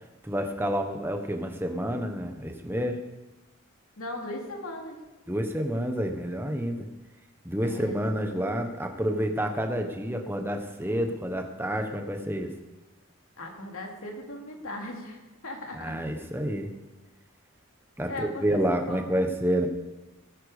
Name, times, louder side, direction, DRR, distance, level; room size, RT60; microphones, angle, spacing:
voice 1, 0.2-3.0 5.3-6.9 7.4-12.5 15.7-16.7 18.0-19.7, equal, 10° right, 4 dB, 1.3 m, -29 dB
voice 2, 4.0-5.0 7.6-8.2 13.4-16.0 18.0-19.1, left 1 dB, 80° left, 1 dB, 2.8 m, -38 dB
18.5 x 10.5 x 5.1 m, 1.1 s
head